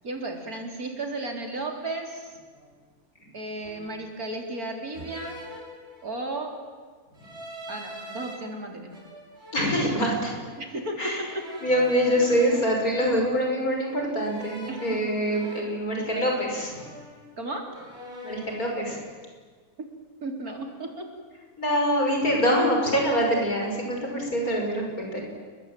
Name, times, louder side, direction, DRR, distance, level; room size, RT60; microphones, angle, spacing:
voice 1, 0.0-2.4 3.3-5.4 6.0-6.6 7.7-8.9 10.6-11.0 14.7-15.1 16.1-16.5 17.4-17.7 19.8-19.9 20.2-21.1, right 2 dB, 90° right, 3 dB, 4.3 m, -34 dB
sound 1, 2.5-2.8 3.6-4.2 4.9-6.3 7.1-8.4 8.9-10.5 11.3-13.6 14.2-16.5 16.7-17.4 17.7-18.7, equal, 45° right, 6.6 m, -44 dB
voice 2, 9.5-10.3 11.0-11.2 11.6-16.7 18.2-19.0 21.6-25.2, equal, 80° left, 1 dB, 7.0 m, -25 dB
29.5 x 21.5 x 9.2 m, 1.5 s
omnidirectional pair, 1.5 m